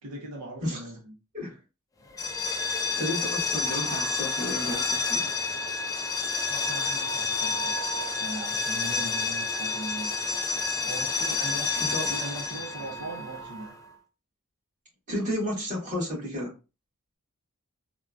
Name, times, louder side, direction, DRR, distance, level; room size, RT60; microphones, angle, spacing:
voice 1, 0.0-1.1 6.5-7.9 8.1-10.4 10.8-13.8, right 1 dB, 85° right, 0.6 m, -40 dB
sound 1, 2.1-13.8, left 4 dB, 15° left, 0.4 m, -29 dB
voice 2, 3.0-5.3 11.9-12.1 15.1-16.5, left 1 dB, 35° right, 1.7 m, -32 dB
3.4 x 2.2 x 2.4 m
head